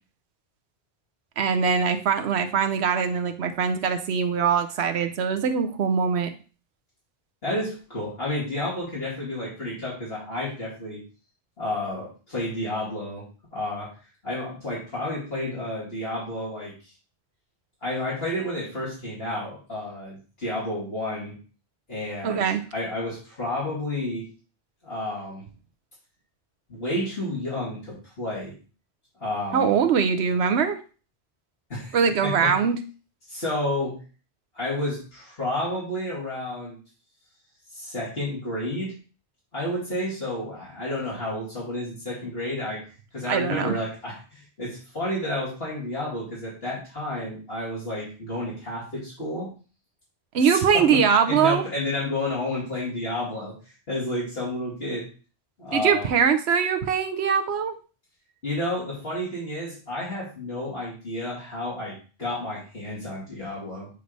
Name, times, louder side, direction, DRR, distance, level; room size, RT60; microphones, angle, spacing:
voice 1, 1.4-6.3 22.2-22.6 29.5-30.8 31.9-32.8 43.3-43.8 50.3-51.6 55.7-57.8, right 6 dB, 85° right, 8 dB, 1.0 m, -22 dB
voice 2, 7.4-11.0 11.6-13.3 13.5-13.9 14.2-16.7 17.8-21.4 21.9-24.3 24.8-25.5 26.7-28.6 29.2-29.8 31.7-32.0 32.2-32.6 33.3-34.0 34.5-36.8 37.7-38.9 39.5-42.9 43.1-49.5 50.3-53.5 53.9-55.1 55.6-56.1 58.4-63.9, left 1 dB, 65° left, -7 dB, 2.7 m, -31 dB
8.0 x 3.3 x 3.9 m, 0.36 s
omnidirectional pair, 1.1 m